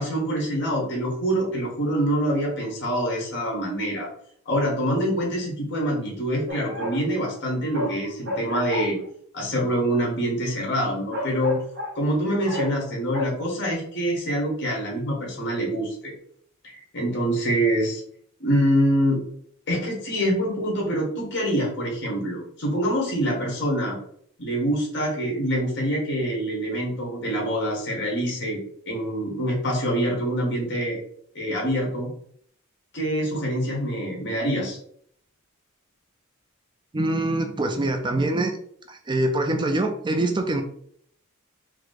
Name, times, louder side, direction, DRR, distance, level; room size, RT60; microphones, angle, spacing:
voice 1, 0.0-4.1 4.5-9.0 9.3-11.6 12.0-16.1 16.6-18.0 18.4-19.2 19.7-24.0 24.4-28.6 28.9-31.0 31.4-32.1 32.9-34.8, equal, 55° left, -2 dB, 1.7 m, -25 dB
sound 1, 6.5-7.1 7.4-9.1 10.6-10.7 11.1-12.0 12.4-12.9 13.1-13.3, left 1 dB, 55° right, 0.9 m, -32 dB
voice 2, 36.9-38.6 38.9-40.6, right 2 dB, 20° right, 5 dB, 0.4 m, -24 dB
4.7 x 2.1 x 4.0 m, 0.63 s
head